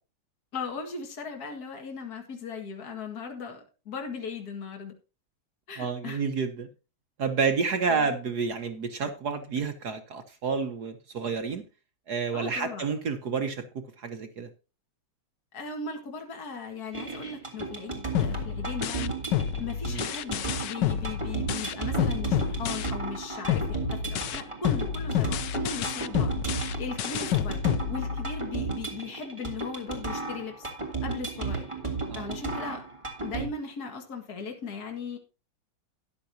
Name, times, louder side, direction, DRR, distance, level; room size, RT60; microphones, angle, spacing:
voice 1, 0.5-4.9 5.7-6.2 7.9-8.1 12.3-12.9 15.5-19.2 19.6-27.6 27.9-30.7 31.0-31.7 32.1-32.8 33.2-35.2, left 4 dB, 50° left, 3 dB, 2.4 m, -38 dB
voice 2, 5.8-6.7 7.2-11.6 12.1-13.6 14.0-14.5 19.9-20.1 32.1-32.2, right 5 dB, 55° right, 7 dB, 1.5 m, -29 dB
sound 1, 16.9-33.5, right 4 dB, 15° right, 2.6 m, -34 dB
sound 2, 18.1-23.2 23.5-28.5, left 9 dB, 70° left, 1.2 m, -29 dB
13.0 x 10.5 x 2.8 m, 0.31 s
omnidirectional pair, 2.2 m